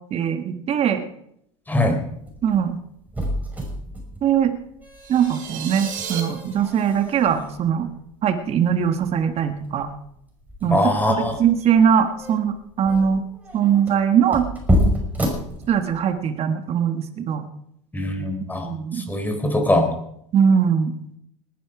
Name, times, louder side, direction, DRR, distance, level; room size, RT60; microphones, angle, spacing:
voice 1, 0.1-1.0 2.4-2.8 4.2-4.5 5.1-7.9 8.2-9.9 10.6-10.8 11.1-13.2 13.5-14.5 15.7-17.4 18.6-19.1 20.3-20.9, right 8 dB, 40° right, 8 dB, 1.5 m, -21 dB
sound 1, 2.0-16.2, equal, 10° right, 5.7 m, -29 dB
sound 2, 5.0-6.2, right 8 dB, 55° right, 3.9 m, -33 dB
voice 2, 10.7-11.4 17.9-18.7 18.9-19.9, left 1 dB, 10° left, 5 dB, 3.8 m, -21 dB
19.5 x 11.0 x 4.9 m, 0.73 s
hypercardioid pair, 95°, 16 cm